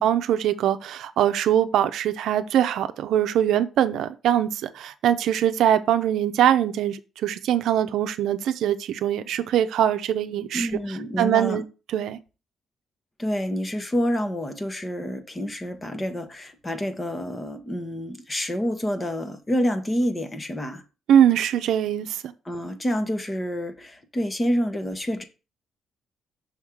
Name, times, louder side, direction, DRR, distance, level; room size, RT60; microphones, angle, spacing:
voice 1, 0.0-10.7 11.2-11.6 11.9-12.2 21.1-22.2, right 10 dB, 80° right, 0.6 m, -22 dB
voice 2, 10.5-11.6 13.2-20.8 22.4-25.2, equal, 20° left, 1.2 m, -28 dB
6.4 x 3.6 x 6.1 m
cardioid pair, 90°, 0 cm